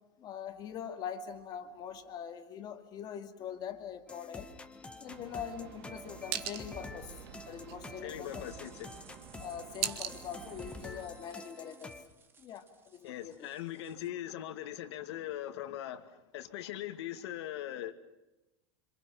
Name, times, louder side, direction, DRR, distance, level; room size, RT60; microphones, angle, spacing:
voice 1, 0.2-4.5 5.0-7.2 7.5-8.5 9.4-12.0 12.4-13.4, left 8 dB, 25° left, 2.2 m, -43 dB
sound 1, 4.1-12.0, left 3 dB, 10° left, 1.3 m, -48 dB
sound 2, 5.1-11.1, right 12 dB, 60° right, 2.1 m, -43 dB
voice 2, 8.0-9.1 13.0-17.9, left 12 dB, 70° left, 2.3 m, -41 dB
sound 3, 8.2-14.1, right 5 dB, 15° right, 1.7 m, -60 dB
27.0 x 27.0 x 6.0 m
supercardioid pair, 170°, 15 cm